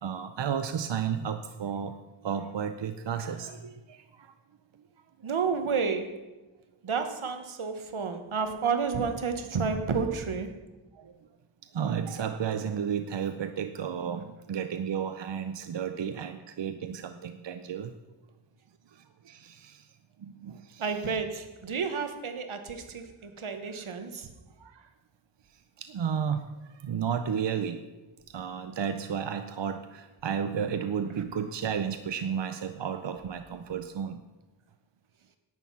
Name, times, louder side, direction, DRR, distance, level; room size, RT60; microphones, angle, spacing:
voice 1, 0.0-1.9 2.2-4.3 11.0-11.1 11.7-17.9 19.3-19.8 20.2-20.9 24.6-24.7 25.8-26.4 26.8-27.8 28.3-34.2, right 7 dB, 65° right, 9 dB, 0.7 m, -32 dB
voice 2, 5.2-6.2 6.8-10.6 20.8-24.3, right 5 dB, 85° right, 8 dB, 1.2 m, -31 dB
11.0 x 9.3 x 5.5 m, 1.1 s
wide cardioid pair, 60°, 48 cm